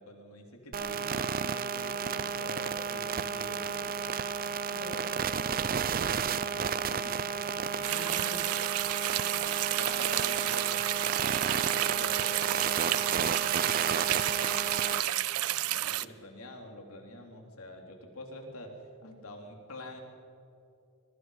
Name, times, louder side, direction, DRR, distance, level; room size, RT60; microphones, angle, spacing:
voice 1, 0.0-4.1 6.5-7.2 7.8-8.7 9.1-10.9 11.4-20.0, left 1 dB, 80° left, 2 dB, 3.4 m, -46 dB
sound 1, 0.7-15.0, right 6 dB, 40° right, 0.5 m, -32 dB
voice 2, 4.7-5.6 7.3-8.1 9.3-9.5 19.0-19.3, left 1 dB, 55° left, -2 dB, 6.9 m, -48 dB
sound 2, 7.8-16.0, right 14 dB, 90° right, 0.5 m, -31 dB
25.5 x 22.0 x 5.0 m, 2.7 s
head